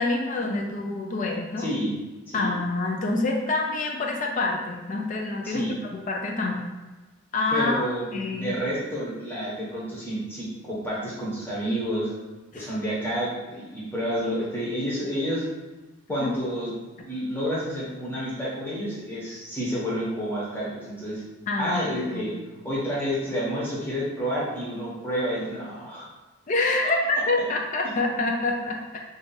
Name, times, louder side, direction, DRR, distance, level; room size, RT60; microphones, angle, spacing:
voice 1, 0.0-1.7 2.3-5.6 5.9-6.6 7.3-7.7 8.1-8.5 12.5-12.7 16.2-16.3 21.5-22.3 26.5-29.1, left 2 dB, 35° left, 1 dB, 0.4 m, -27 dB
voice 2, 1.6-2.0 2.3-2.5 5.4-5.7 7.5-12.1 12.5-15.5 16.1-21.2 21.6-22.3 22.6-26.1, equal, 10° left, -7 dB, 0.9 m, -29 dB
2.7 x 2.4 x 3.8 m, 1.2 s
head